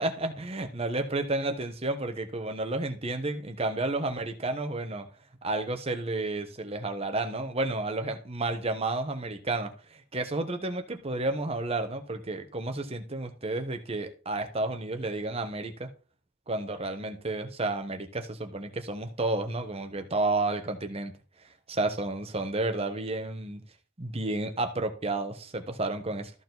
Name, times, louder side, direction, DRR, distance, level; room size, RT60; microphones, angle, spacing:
voice 1, 0.0-5.1 5.4-15.9 16.5-21.1 21.7-23.6 24.0-26.3, right 2 dB, 30° right, 1.2 m, -31 dB
13.5 x 4.6 x 4.0 m
head